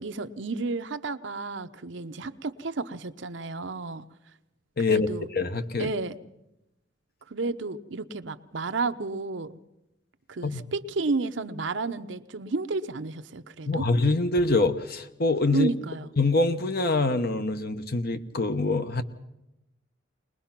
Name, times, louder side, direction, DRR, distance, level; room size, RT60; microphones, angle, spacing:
voice 1, 0.0-4.0 4.9-5.3 5.8-6.2 7.3-9.6 10.3-13.9 15.5-16.1, right 3 dB, 65° right, 11 dB, 0.7 m, -31 dB
voice 2, 4.8-5.1 5.3-5.9 10.4-10.6 13.7-15.7 16.2-19.0, left 3 dB, 50° left, 9 dB, 1.1 m, -25 dB
22.0 x 20.0 x 5.9 m, 0.90 s
head